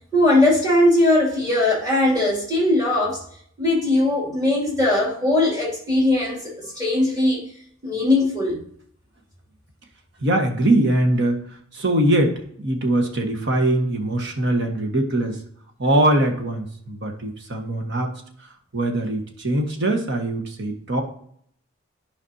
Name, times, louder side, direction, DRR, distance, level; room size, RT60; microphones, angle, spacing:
voice 1, 0.1-3.2 3.6-7.4 7.8-8.6, left 1 dB, 15° right, 2.5 m, -19 dB
voice 2, 10.2-11.4 11.7-15.4 15.8-21.0, right 1 dB, 55° right, 1.4 m, -22 dB
10.5 x 5.2 x 2.8 m
head